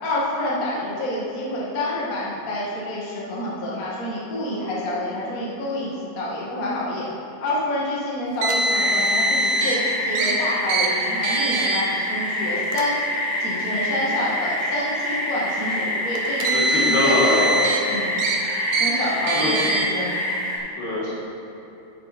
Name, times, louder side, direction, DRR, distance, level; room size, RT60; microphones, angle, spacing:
voice 1, 0.0-7.1 7.4-13.0 13.4-17.4 17.9-18.2 18.8-20.1, left 1 dB, 30° left, -6 dB, 1.7 m, -28 dB
Car, 8.4-9.8 10.1-10.3 10.7-10.9 11.2-11.8 12.6-12.8 13.8-13.9 16.2-17.8 18.2-18.4 18.7-18.9 19.3-19.8, right 1 dB, 80° right, 2.7 m, -23 dB
sound 1, 8.7-20.6, left 1 dB, 10° left, 2.0 m, -26 dB
voice 2, 16.5-17.6 19.3-19.6 20.8-21.1, left 2 dB, 85° left, -6 dB, 4.6 m, -23 dB
11.0 x 9.3 x 4.4 m, 2.9 s
omnidirectional pair, 4.4 m